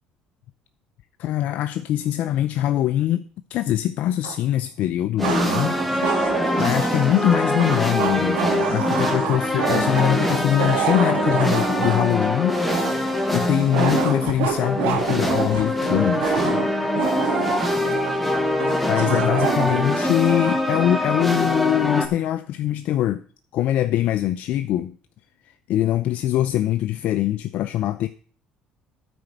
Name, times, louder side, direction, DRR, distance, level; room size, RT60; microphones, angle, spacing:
voice 1, 1.2-3.2 3.5-5.8 6.3-16.6 18.9-23.2 23.5-24.9 25.4-28.1, left 12 dB, 65° left, 0.5 m, -23 dB
sound 1, 4.2-4.3 5.2-20.6, right 8 dB, 85° right, 1.9 m, -28 dB
sound 2, 5.2-22.1, left 1 dB, ahead, 1.6 m, -24 dB
9.4 x 5.2 x 7.9 m
supercardioid pair, 100°, 3 cm